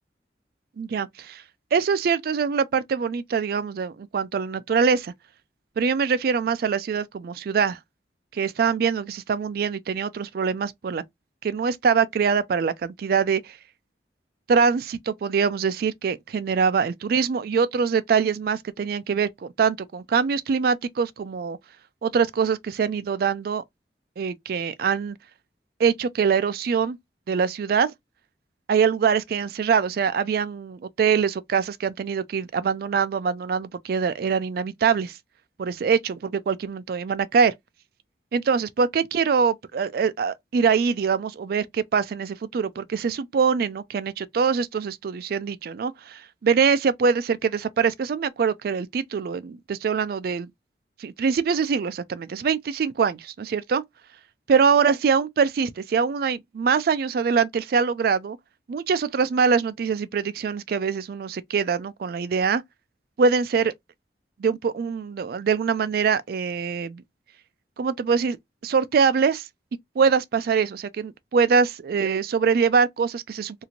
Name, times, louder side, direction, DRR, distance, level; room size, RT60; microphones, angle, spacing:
voice 1, 0.8-1.4 1.7-5.1 5.8-7.8 8.3-11.0 11.4-13.6 14.5-21.6 22.0-23.6 24.2-25.2 25.8-27.0 27.3-27.9 28.7-35.2 35.6-37.5 38.3-50.5 51.0-53.8 54.5-58.4 58.7-62.6 63.2-63.7 64.4-67.0 67.8-68.4 68.6-69.5 70.0-73.6, right 6 dB, 55° right, 0.3 m, -23 dB
2.8 x 2.5 x 2.7 m
head